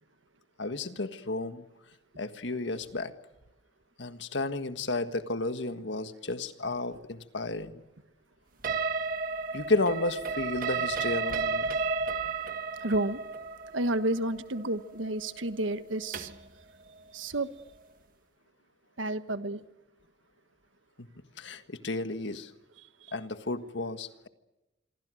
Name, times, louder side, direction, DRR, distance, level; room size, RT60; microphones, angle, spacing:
voice 1, 0.6-1.6 2.2-3.1 4.0-7.7 9.5-11.7 21.0-21.1 21.4-22.5 23.1-24.3, left 2 dB, 70° left, 9 dB, 1.6 m, -32 dB
sound 1, 8.6-16.5, right 4 dB, 45° right, 1.8 m, -33 dB
voice 2, 12.8-13.2 13.7-16.3 17.1-17.5 19.0-19.6 22.8-23.1, right 1 dB, 90° right, 11 dB, 1.4 m, -31 dB
27.0 x 23.5 x 6.5 m, 1.0 s
head